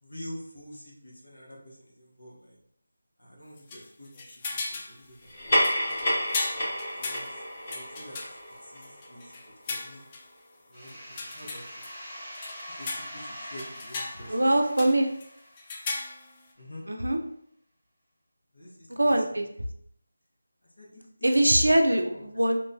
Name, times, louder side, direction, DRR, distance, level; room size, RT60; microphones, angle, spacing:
voice 1, 0.0-2.6 3.2-5.3 5.6-6.2 7.0-7.4 7.7-8.2 8.6-9.3 9.7-10.0 10.7-11.8 12.7-14.4 16.6-16.8 18.5-19.1 19.4-19.5 20.8-21.4 21.9-22.2, equal, 80° left, -3 dB, 1.1 m, -46 dB
sound 1, 3.6-5.0 5.3-5.4 5.6-10.2 10.9-11.9 12.3-13.3 13.6-14.5 14.8-15.3 15.6-16.4, left 3 dB, 25° left, 0.3 m, -37 dB
sound 2, 5.2-10.1, equal, 40° left, 1.1 m, -30 dB
sound 3, 10.7-16.2, equal, 5° left, 0.7 m, -44 dB
voice 2, 14.3-15.1 16.9-17.2 19.0-19.5 21.2-22.6, right 1 dB, 85° right, 5 dB, 0.4 m, -22 dB
2.8 x 2.2 x 2.6 m, 0.70 s
figure-of-eight pair, 165°, 0 cm